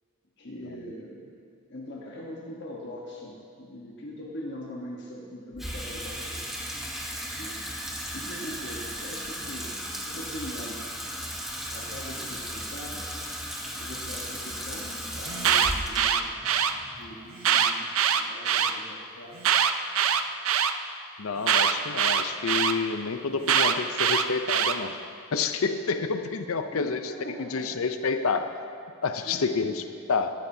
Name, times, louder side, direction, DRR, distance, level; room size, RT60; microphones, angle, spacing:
voice 1, 0.4-1.3 1.7-6.6 7.3-7.6 8.1-9.8 10.1-10.8 11.7-13.1 13.8-16.3 17.0-17.9 18.2-19.4 26.7-27.6 29.2-29.5, equal, 50° left, -3 dB, 1.2 m, -41 dB
Water tap faucet / Sink (filling or washing), 5.5-17.9, equal, ahead, 1.0 m, -36 dB
Alarm, 15.3-16.7 17.4-18.7 19.4-20.7 21.5-22.7 23.5-24.7, right 8 dB, 65° right, 0.5 m, -23 dB
voice 2, 21.2-24.9 25.3-28.5 29.0-30.3, left 5 dB, 75° left, 8 dB, 0.6 m, -29 dB
14.5 x 13.0 x 2.8 m, 2.3 s
head